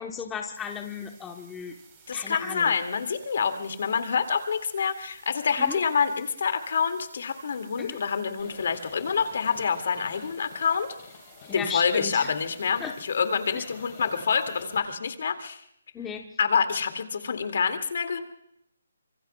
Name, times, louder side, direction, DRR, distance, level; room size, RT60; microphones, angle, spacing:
voice 1, 0.0-1.7 2.1-2.7 5.6-5.8 7.8-8.0 11.5-12.3 12.8-12.9 13.5-13.6 15.9-16.3, left 7 dB, 10° left, 2 dB, 1.0 m, -35 dB
sound 1, 0.5-14.8, right 6 dB, 20° right, 4.2 m, -56 dB
voice 2, 2.1-10.9 11.5-15.6 16.4-18.2, left 6 dB, 50° left, 7 dB, 2.2 m, -27 dB
Livestock farm animals working animals, 8.4-14.8, left 6 dB, 30° left, 4.4 m, -48 dB
26.0 x 23.5 x 2.3 m, 0.72 s
hypercardioid pair, 170°, 0 cm